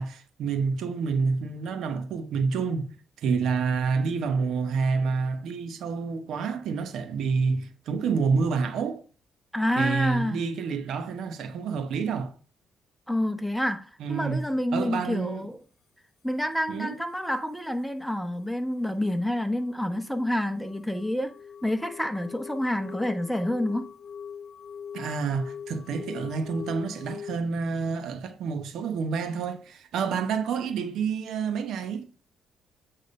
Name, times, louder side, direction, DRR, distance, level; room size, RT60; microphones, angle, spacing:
voice 1, 0.0-9.0 9.8-12.3 14.0-14.4 14.7-15.4 16.7-17.0 24.9-32.1, right 5 dB, 75° right, 1.0 m, -28 dB
voice 2, 9.5-10.4 13.1-15.6 16.2-21.3 21.6-23.9, left 1 dB, ahead, 1.0 m, -28 dB
sound 1, 19.0-27.4, left 7 dB, 45° left, 0.5 m, -42 dB
8.3 x 3.6 x 5.4 m
cardioid pair, 90°, 0 cm